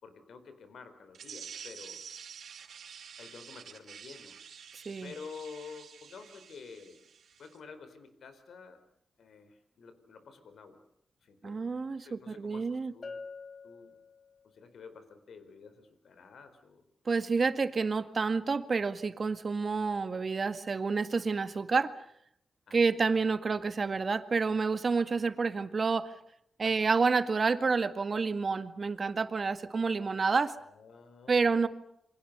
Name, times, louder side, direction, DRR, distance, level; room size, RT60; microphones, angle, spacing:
voice 1, 0.0-2.0 3.2-4.4 5.0-7.0 7.4-8.8 9.2-10.8 11.2-11.7 12.0-13.2 13.6-13.9 14.4-16.8 22.7-22.8 26.6-26.9 30.7-31.7, left 5 dB, 75° left, 10 dB, 4.6 m, -50 dB
sound 1, 1.1-7.6, right 7 dB, 80° right, 2.7 m, -49 dB
voice 2, 11.4-12.9 17.1-21.9 22.7-26.1 26.6-30.5 31.3-31.7, right 4 dB, 45° right, 11 dB, 1.9 m, -29 dB
Bell, 13.0-14.7, left 4 dB, 45° left, 2.8 m, -46 dB
28.0 x 24.5 x 6.8 m, 0.74 s
cardioid pair, 80°, 0 cm